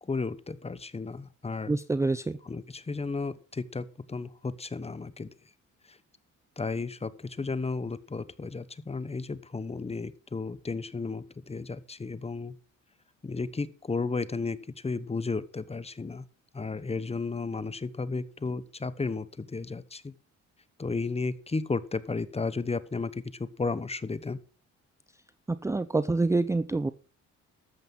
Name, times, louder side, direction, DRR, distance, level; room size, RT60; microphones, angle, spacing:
voice 1, 0.0-1.8 2.5-5.3 5.9-6.0 6.6-12.5 13.2-16.3 16.5-20.1 20.8-24.4, left 4 dB, 20° left, 15 dB, 1.1 m, -33 dB
voice 2, 1.7-2.4 25.5-26.9, right 3 dB, 10° right, 14 dB, 0.5 m, -26 dB
13.0 x 8.1 x 5.4 m, 0.38 s
cardioid pair, 90°, 30 cm